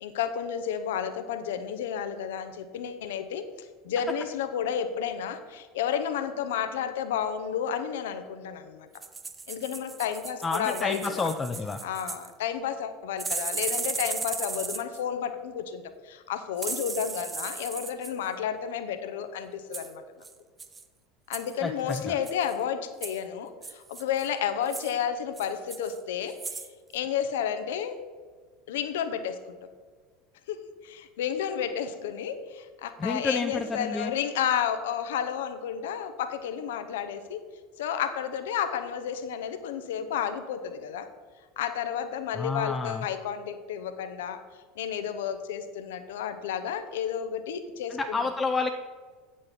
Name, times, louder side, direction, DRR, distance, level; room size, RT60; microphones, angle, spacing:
voice 1, 0.0-8.9 9.5-11.3 11.8-20.0 21.3-26.6 26.9-28.0 28.7-29.6 30.5-30.6 30.8-37.4 37.8-41.1 41.6-44.4 44.8-48.2, left 8 dB, 65° left, 9 dB, 0.7 m, -31 dB
sound 1, 8.9-12.3 13.2-15.0 16.6-18.1 19.7-19.9 20.2-20.3 20.6-20.8 21.3-21.5 21.9-22.5 23.0-23.2 23.6-24.3 24.7-24.9 25.4-26.0 26.3-26.7 27.0-27.1, right 4 dB, 20° right, 0.7 m, -36 dB
voice 2, 10.4-11.8 21.6-22.1 33.0-34.1 42.3-43.1 47.9-48.7, left 4 dB, 20° left, 6 dB, 0.5 m, -30 dB
8.8 x 6.3 x 5.7 m, 1.5 s
figure-of-eight pair, 70°, 0 cm